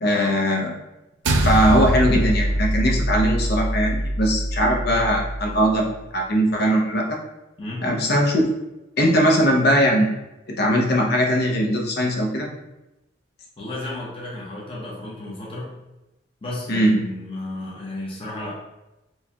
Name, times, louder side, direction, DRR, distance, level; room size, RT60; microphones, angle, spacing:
voice 1, 0.0-0.7 1.4-5.9 6.1-7.2 7.8-8.4 9.0-10.1 10.6-12.5 16.7-17.0, equal, 55° left, 0 dB, 0.7 m, -20 dB
sound 1, 1.2-5.8, right 1 dB, 65° right, 0.4 m, -23 dB
voice 2, 7.6-7.9 13.6-15.8 16.4-18.5, left 2 dB, 30° left, -6 dB, 0.9 m, -33 dB
4.5 x 2.3 x 2.8 m, 0.96 s
head